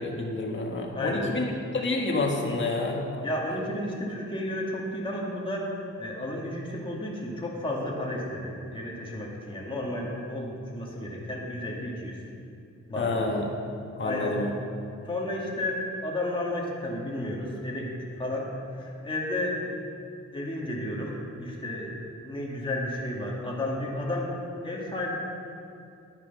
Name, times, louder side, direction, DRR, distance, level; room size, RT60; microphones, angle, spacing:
voice 1, 0.0-1.4 1.7-3.3 13.0-13.6 14.0-14.6, left 2 dB, 40° left, 0 dB, 1.8 m, -28 dB
voice 2, 0.9-1.3 3.2-12.2 12.9-13.2 14.0-14.4 15.0-19.7 20.3-24.4 24.6-25.1, left 1 dB, 15° left, -4 dB, 2.1 m, -32 dB
10.5 x 9.9 x 5.5 m, 2.6 s
wide cardioid pair, 105°, 30 cm